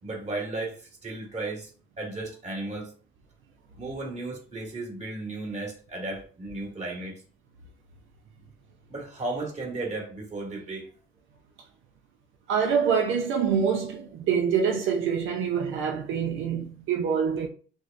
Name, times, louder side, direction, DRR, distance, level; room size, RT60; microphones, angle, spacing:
voice 1, 0.0-1.7 2.0-2.9 3.8-7.2 8.9-10.9, right 2 dB, 35° right, 1.7 m, -34 dB
voice 2, 12.5-17.5, right 7 dB, 80° right, 0.6 m, -25 dB
6.1 x 2.1 x 2.5 m
cardioid pair, 90°, 20 cm